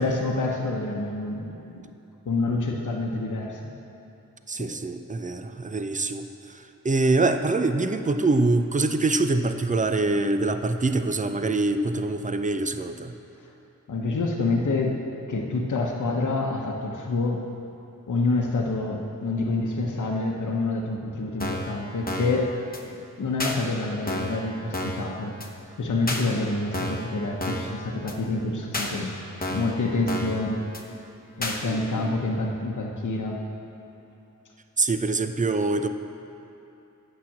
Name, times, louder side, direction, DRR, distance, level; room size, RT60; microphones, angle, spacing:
voice 1, 0.0-1.8 2.3-3.6 4.6-4.7 13.9-15.0 15.3-17.5 18.1-22.5 23.2-25.3 25.8-29.1 29.5-30.6 31.4-33.4, left 3 dB, 65° left, 0 dB, 0.9 m, -27 dB
voice 2, 4.5-13.2 31.6-32.1 34.8-35.9, right 3 dB, 25° right, 8 dB, 0.5 m, -25 dB
sound 1, 21.4-21.7 22.1-22.4 22.7-22.8 23.4-23.6 24.1-24.4 24.7-25.1 25.4-25.5 26.1-26.2 26.7-27.1 27.4-27.7 28.1-28.2 28.7-28.9 29.4-29.7 30.1-30.4 30.7-30.8 31.4-31.6, left 1 dB, 25° left, 1.0 m, -30 dB
8.7 x 6.0 x 7.3 m, 2.9 s
wide cardioid pair, 85°, 32 cm